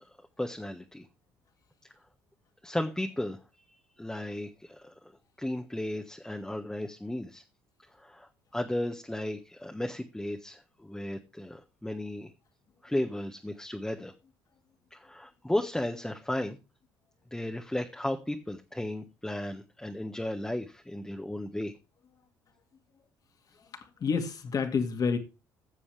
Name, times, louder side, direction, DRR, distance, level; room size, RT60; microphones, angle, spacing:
voice 1, 0.4-1.0 2.6-3.4 4.0-5.1 5.4-7.4 8.0-12.3 12.8-14.1 14.9-16.6 17.3-21.7, left 1 dB, 5° left, 1.4 m, -34 dB
voice 2, 23.7-25.2, left 5 dB, 45° left, 2.2 m, -29 dB
17.0 x 7.1 x 3.4 m
supercardioid pair, 75°, 8 cm